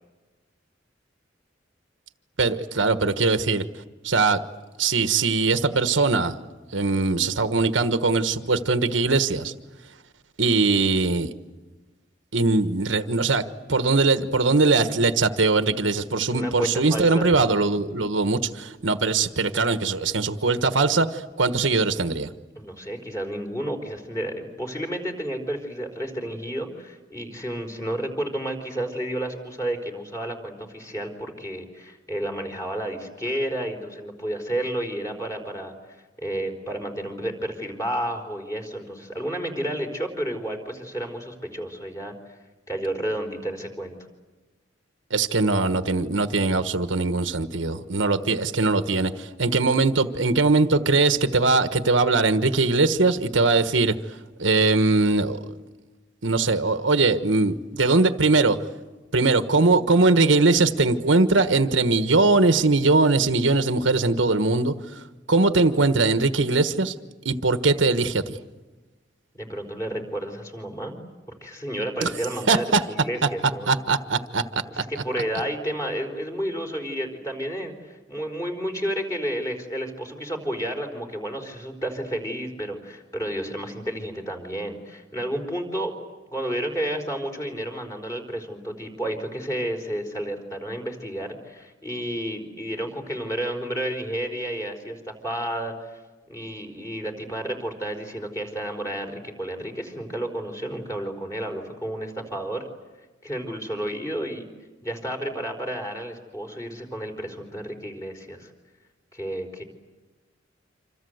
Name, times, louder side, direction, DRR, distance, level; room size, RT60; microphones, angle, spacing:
voice 1, 2.4-3.6 4.0-4.4 4.8-6.4 6.7-9.5 10.4-11.3 12.3-13.4 13.7-22.3 45.1-54.0 54.4-55.4 56.2-58.6 59.1-64.7 65.3-66.9 67.2-68.4 72.0-72.1 72.5-72.8 73.7-74.8, right 3 dB, 90° right, 1.4 m, -21 dB
voice 2, 16.3-17.3 22.6-35.7 36.2-42.1 42.7-43.9 69.3-71.0 71.4-73.7 74.7-85.9 86.3-96.0 96.3-102.6 103.2-104.4 104.8-108.5 109.1-109.6, right 1 dB, 15° left, 4.5 m, -31 dB
27.5 x 27.0 x 8.0 m
head